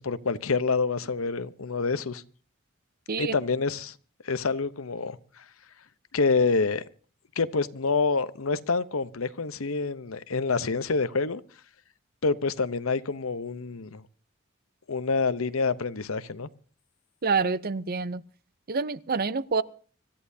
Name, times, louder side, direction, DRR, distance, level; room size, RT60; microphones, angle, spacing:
voice 1, 0.0-2.2 3.2-4.0 4.2-5.4 6.1-6.9 7.4-11.4 12.2-14.0 14.9-16.5, left 4 dB, 90° left, 0.9 m, -27 dB
voice 2, 17.2-18.2 18.7-19.6, right 4 dB, 45° right, 0.7 m, -27 dB
25.0 x 13.5 x 2.8 m
head